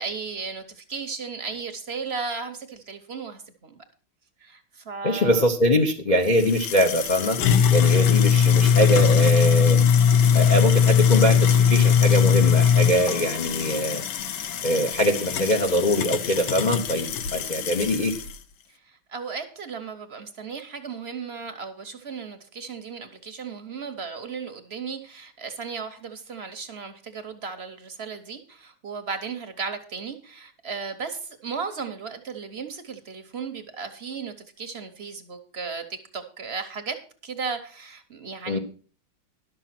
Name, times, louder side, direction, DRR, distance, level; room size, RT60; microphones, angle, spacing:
voice 1, 0.0-3.8 4.4-5.5 18.7-37.0 37.2-38.6, right 5 dB, 45° right, 0.8 m, -35 dB
voice 2, 5.0-7.4 7.7-9.8 10.3-14.0 14.6-18.1 38.5-38.6, equal, 60° left, 0.4 m, -23 dB
sound 1, 6.3-18.3, left 7 dB, 75° left, 1.7 m, -20 dB
11.5 x 6.8 x 5.8 m
omnidirectional pair, 2.2 m